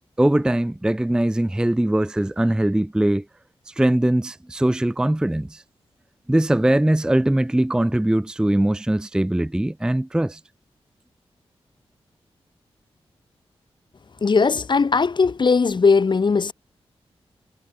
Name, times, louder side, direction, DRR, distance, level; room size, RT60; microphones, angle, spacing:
voice 1, 0.2-3.2 3.7-5.6 6.3-10.4, right 1 dB, 5° right, 0.4 m, -21 dB
voice 2, 14.2-16.5, left 4 dB, 45° left, 0.7 m, -18 dB
cardioid pair, 50°, 11 cm